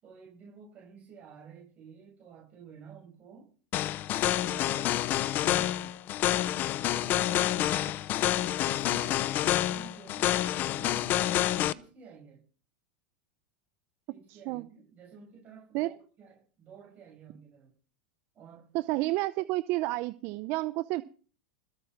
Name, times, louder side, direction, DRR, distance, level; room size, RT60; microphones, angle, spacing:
voice 1, 0.0-3.5 4.5-6.0 6.9-7.8 8.1-12.4 14.1-17.7 18.3-18.7, right 5 dB, 30° right, 7.9 m, -51 dB
sound 1, 3.7-11.7, left 13 dB, 40° left, 0.8 m, -28 dB
voice 2, 14.3-14.7 15.7-15.9 18.7-21.0, right 19 dB, 50° right, 0.7 m, -30 dB
20.5 x 9.0 x 6.0 m
supercardioid pair, 120°, 5 cm